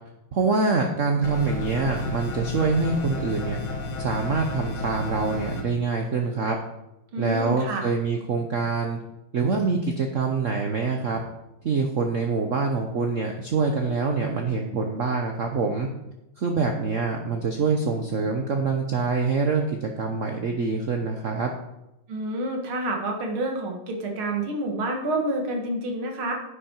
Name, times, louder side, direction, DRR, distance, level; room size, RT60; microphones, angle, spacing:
voice 1, 0.3-3.6 4.0-6.6 7.2-9.0 9.3-11.2 11.6-15.9 16.4-21.5, right 4 dB, 50° right, 3 dB, 1.0 m, -25 dB
sound 1, 1.2-5.6, left 3 dB, 80° left, 2.3 m, -32 dB
voice 2, 7.1-7.8 22.1-26.3, right 1 dB, 90° right, 2 dB, 2.5 m, -28 dB
10.5 x 8.5 x 4.5 m, 0.90 s
omnidirectional pair, 2.2 m